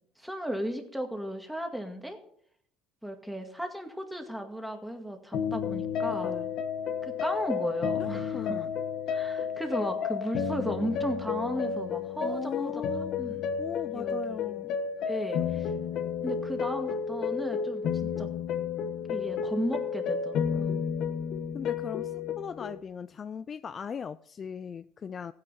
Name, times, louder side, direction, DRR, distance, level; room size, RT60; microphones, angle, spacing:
voice 1, 0.2-2.2 3.0-6.4 7.0-8.7 9.1-12.7 13.2-13.4 13.9-14.6 15.1-15.7 16.2-18.3 19.0-20.8, equal, ahead, 2.1 m, -35 dB
sound 1, 5.3-22.8, left 7 dB, 55° left, 1.2 m, -32 dB
voice 2, 6.1-6.5 8.0-8.7 12.2-13.2 13.6-14.7 15.4-15.6 21.5-25.3, left 7 dB, 30° left, 0.4 m, -39 dB
15.5 x 9.4 x 4.3 m
cardioid pair, 125°, 0 cm